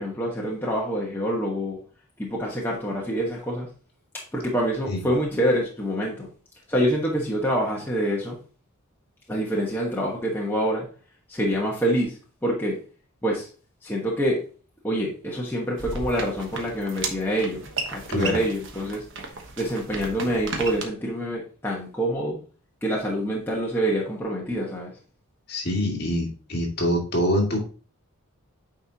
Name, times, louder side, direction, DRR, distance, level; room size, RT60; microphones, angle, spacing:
voice 1, 0.0-1.8 2.2-3.7 4.3-6.3 6.7-8.4 9.3-10.9 11.3-12.8 13.2-13.5 13.8-14.4 14.8-17.7 17.9-19.0 19.6-22.4 22.8-24.9, equal, 10° left, -4 dB, 1.2 m, -26 dB
sound 1, 15.8-20.8, right 3 dB, 55° right, 1.1 m, -34 dB
voice 2, 25.5-27.6, equal, 45° left, -1 dB, 2.0 m, -25 dB
8.8 x 4.5 x 2.8 m, 0.38 s
head